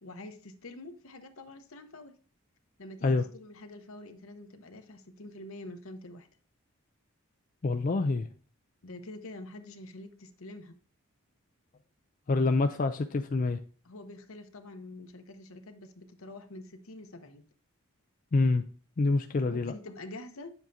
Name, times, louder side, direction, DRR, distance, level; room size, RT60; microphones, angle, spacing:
voice 1, 0.0-2.2 2.8-6.3 8.8-10.8 13.8-17.5 19.5-20.5, left 2 dB, 70° left, 7 dB, 1.0 m, -46 dB
voice 2, 7.6-8.3 12.3-13.6 18.3-18.6 19.0-19.7, left 3 dB, 40° left, 7 dB, 0.4 m, -26 dB
9.0 x 7.3 x 2.7 m, 0.42 s
head